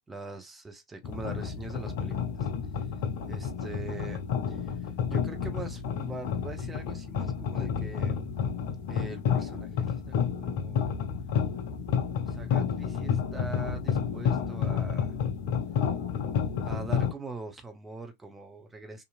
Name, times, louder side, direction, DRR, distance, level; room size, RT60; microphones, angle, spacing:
voice 1, 0.1-2.5 3.3-4.2 4.5-8.2 8.9-11.0 12.2-15.1 16.6-19.0, right 3 dB, 10° right, 0.7 m, -42 dB
sound 1, 1.0-17.1, left 7 dB, 50° left, 0.5 m, -30 dB
2.8 x 2.5 x 2.5 m
figure-of-eight pair, 90°, 0 cm